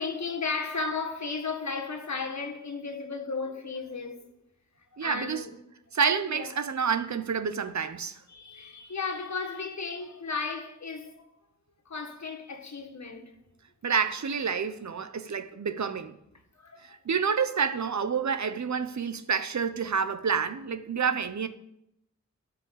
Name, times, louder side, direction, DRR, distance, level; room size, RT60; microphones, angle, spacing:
voice 1, 0.0-4.3 4.9-5.5 6.3-6.5 8.3-11.3 11.9-13.3 16.5-17.0 21.1-21.2, left 4 dB, 70° left, 1.8 m, -34 dB
voice 2, 5.0-5.4 5.9-8.2 13.8-16.2 17.0-21.5, right 6 dB, 70° right, 0.9 m, -28 dB
13.0 x 5.3 x 8.3 m
wide cardioid pair, 90°, 29 cm